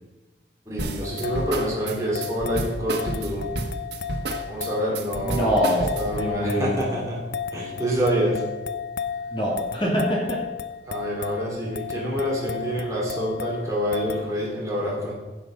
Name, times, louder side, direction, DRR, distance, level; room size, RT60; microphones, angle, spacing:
voice 1, 0.6-3.5 4.5-5.6 6.0-7.2 7.5-8.4 10.9-15.1, equal, 20° right, -4 dB, 3.0 m, -27 dB
sound 1, 0.8-6.3, right 2 dB, 70° right, 1.4 m, -31 dB
sound 2, 1.0-14.4, left 7 dB, 75° left, 0.6 m, -34 dB
voice 2, 5.2-6.9 9.3-10.4, equal, 30° left, -3 dB, 2.5 m, -25 dB
15.5 x 5.7 x 5.5 m, 1.2 s
head